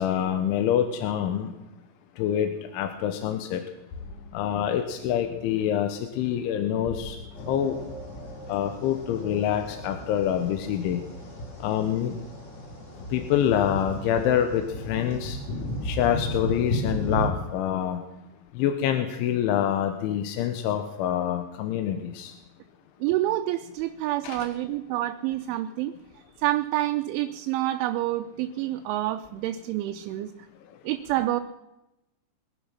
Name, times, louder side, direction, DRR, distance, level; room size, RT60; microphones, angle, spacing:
voice 1, 0.0-1.5 2.2-3.6 4.3-7.2 7.5-7.7 8.5-11.0 11.6-12.2 13.1-15.4 15.8-18.0 18.6-22.3 24.2-24.5, left 10 dB, 85° left, 6 dB, 3.4 m, -26 dB
sound 1, 3.9-9.6, left 3 dB, 50° left, 3.4 m, -47 dB
sound 2, 7.3-17.3, equal, 20° left, 2.2 m, -35 dB
voice 2, 23.0-25.9 26.4-30.3 30.8-31.4, right 15 dB, 85° right, 5 dB, 3.1 m, -28 dB
22.5 x 11.0 x 5.8 m, 0.92 s
omnidirectional pair, 5.5 m